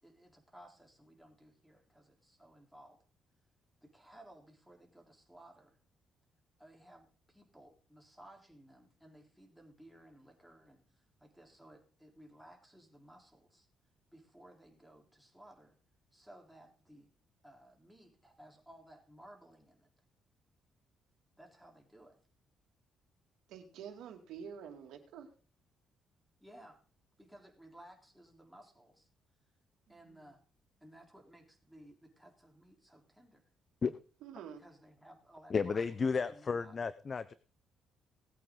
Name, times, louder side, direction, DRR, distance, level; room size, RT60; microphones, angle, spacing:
voice 1, 0.0-3.0 3.8-5.8 6.6-13.7 14.1-15.8 16.1-17.1 17.4-19.9 21.4-22.2 26.4-26.8 27.2-29.1 29.9-30.4 30.8-33.4 34.6-35.9 36.3-36.8, right 1 dB, ahead, 1 dB, 3.7 m, -58 dB
voice 2, 23.5-25.3 30.0-30.3 34.2-34.6, right 7 dB, 85° right, 4 dB, 2.4 m, -48 dB
voice 3, 35.5-37.3, left 5 dB, 40° left, 15 dB, 0.6 m, -33 dB
19.0 x 8.6 x 3.9 m, 0.39 s
cardioid pair, 90°, 0 cm